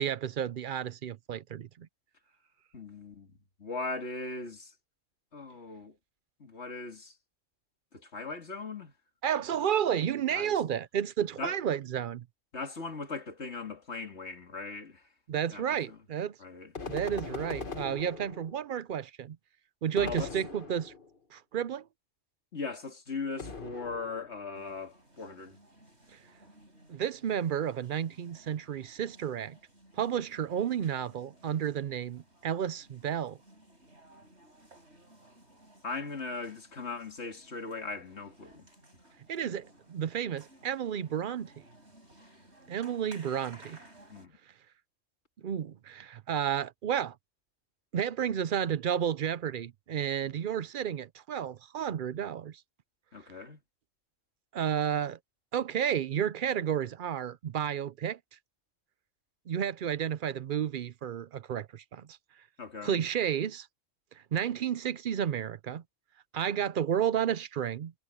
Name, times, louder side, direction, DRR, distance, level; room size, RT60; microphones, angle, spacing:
voice 1, 0.0-1.9 9.2-12.2 15.3-16.4 16.9-19.4 19.8-20.9 21.3-21.8 26.9-29.6 30.0-33.4 39.3-41.5 42.7-43.8 45.4-47.2 47.9-52.6 54.5-55.2 55.5-58.2 59.5-62.2 62.8-63.7 64.3-65.8 66.3-67.9, right 9 dB, 55° right, 0.7 m, -31 dB
voice 2, 2.7-4.7 5.3-6.0 6.4-7.2 7.9-8.9 10.3-10.6 11.4-11.6 12.5-15.1 15.5-16.0 16.4-16.7 20.0-20.3 22.5-25.6 35.8-38.7 44.1-44.4 53.1-53.6 62.6-63.0, left 4 dB, 85° left, 2.7 m, -39 dB
sound 1, 16.7-18.7 20.0-21.2 23.4-24.4, left 4 dB, 50° left, 2.0 m, -41 dB
sound 2, 24.5-44.3, right 1 dB, 85° right, 7.9 m, -58 dB
omnidirectional pair, 1.1 m